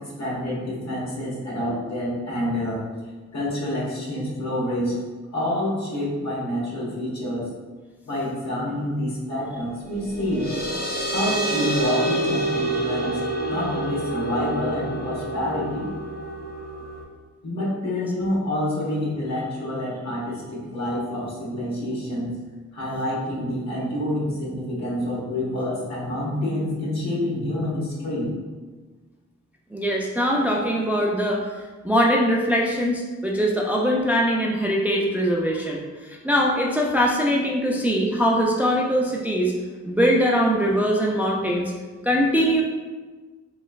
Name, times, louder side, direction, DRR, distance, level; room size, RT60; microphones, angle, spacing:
voice 1, 0.0-2.8 3.3-5.0 5.3-7.5 8.1-10.5 11.1-13.2 13.5-15.9 17.4-22.4 22.7-28.4, left 1 dB, 65° left, -5 dB, 1.2 m, -27 dB
sound 1, 9.9-17.0, right 2 dB, 35° left, 1.0 m, -28 dB
voice 2, 29.7-31.4 31.8-39.5 39.8-41.6 42.0-42.6, equal, 5° right, -2 dB, 0.3 m, -22 dB
3.1 x 3.1 x 2.3 m, 1.4 s
cardioid pair, 85°, 29 cm